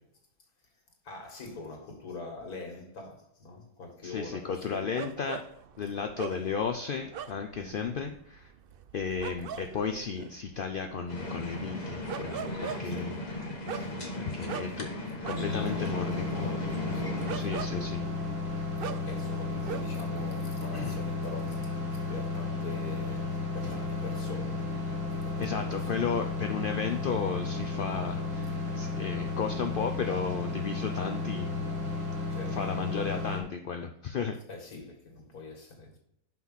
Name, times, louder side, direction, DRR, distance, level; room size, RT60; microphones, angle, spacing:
voice 1, 1.0-5.1 7.6-8.0 12.8-13.3 15.4-17.6 18.9-21.8 22.1-24.7 25.2-26.1 32.3-32.6 34.5-36.0, left 3 dB, 80° left, 2.4 m, -44 dB
voice 2, 4.0-5.4 5.8-8.5 8.9-13.1 14.2-14.9 15.3-16.3 17.3-18.0 20.7-21.0 25.4-31.5 32.5-34.3, left 6 dB, 65° left, 0.5 m, -34 dB
sound 1, 4.9-20.2 20.4-21.2, right 8 dB, 75° right, 0.5 m, -42 dB
sound 2, 11.1-17.4, left 1 dB, 30° left, 1.2 m, -37 dB
sound 3, 15.3-33.4, left 3 dB, 20° right, 1.4 m, -33 dB
6.1 x 5.6 x 5.6 m
omnidirectional pair, 1.6 m